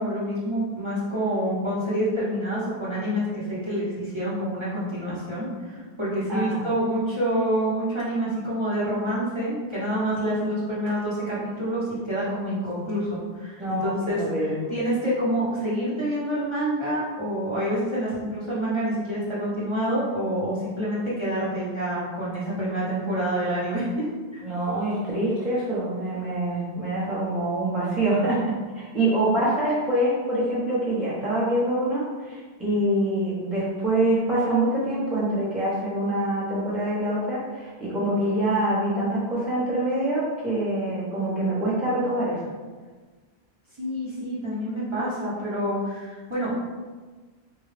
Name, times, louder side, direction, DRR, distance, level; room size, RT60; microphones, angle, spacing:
voice 1, 0.0-24.1 24.3-24.4 43.8-46.5, equal, 30° right, -9 dB, 0.9 m, -27 dB
voice 2, 6.3-6.6 13.6-14.6 24.4-28.4 28.8-42.4, right 1 dB, ahead, -9 dB, 0.7 m, -25 dB
3.7 x 2.3 x 3.2 m, 1.4 s
omnidirectional pair, 1.1 m